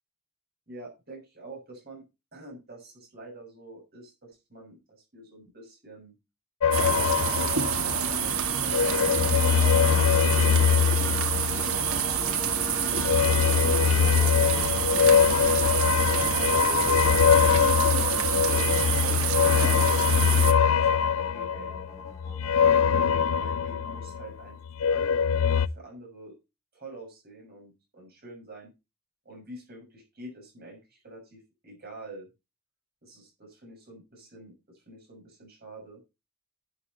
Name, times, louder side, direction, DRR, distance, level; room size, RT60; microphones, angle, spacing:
voice 1, 0.7-2.0 2.3-6.2 7.1-9.5 10.3-11.9 12.6-14.9 15.6-17.6 18.5-21.0 21.3-21.7 23.1-26.3 26.7-28.7 29.2-32.3 33.0-36.0, right 1 dB, 45° right, 1 dB, 6.5 m, -46 dB
sound 1, 6.6-8.2 8.6-12.1 13.0-24.3 24.6-25.7, left 7 dB, 80° left, 0.6 m, -23 dB
sound 2, 6.7-20.5, right 7 dB, 80° right, 1.7 m, -27 dB
sound 3, 8.2-24.4, left 1 dB, 15° left, 1.2 m, -41 dB
12.5 x 8.5 x 4.3 m, 0.27 s
head